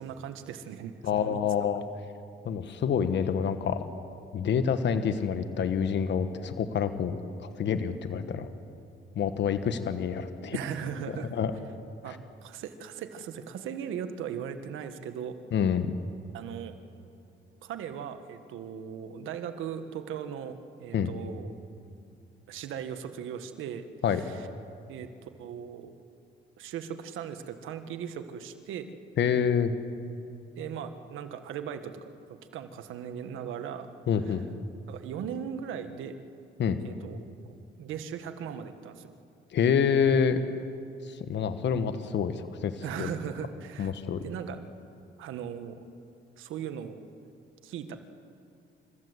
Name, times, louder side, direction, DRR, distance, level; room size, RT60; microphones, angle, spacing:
voice 1, 0.0-1.4 10.5-11.3 12.0-15.4 16.3-16.8 17.6-21.5 22.5-23.8 24.1-24.5 24.9-25.9 26.6-28.9 30.6-33.9 34.3-34.4 34.9-36.2 36.8-37.3 37.8-39.1 42.8-43.9 44.2-44.6 45.2-45.8 46.4-47.0 47.6-48.0, right 8 dB, 85° right, 9 dB, 1.5 m, -38 dB
voice 2, 1.0-1.8 2.4-3.8 4.3-8.5 9.1-10.6 11.3-11.5 15.5-15.9 20.9-21.1 24.0-24.2 29.2-29.7 34.1-34.5 36.6-36.8 39.5-40.4 41.0-43.1 43.8-44.2, left 7 dB, 65° left, 9 dB, 1.4 m, -27 dB
30.0 x 14.5 x 8.1 m, 2.6 s
cardioid pair, 90°, 20 cm